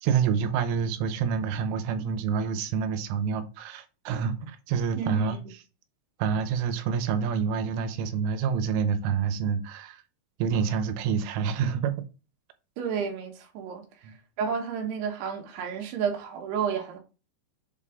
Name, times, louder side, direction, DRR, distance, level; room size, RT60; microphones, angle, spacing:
voice 1, 0.0-5.4 6.2-10.0 10.4-12.0 14.0-14.2, right 6 dB, 90° right, 3.4 m, -27 dB
voice 2, 5.0-5.4 12.8-13.8 14.4-17.0, right 7 dB, 65° right, 3.2 m, -31 dB
7.9 x 4.2 x 3.7 m
omnidirectional pair, 5.5 m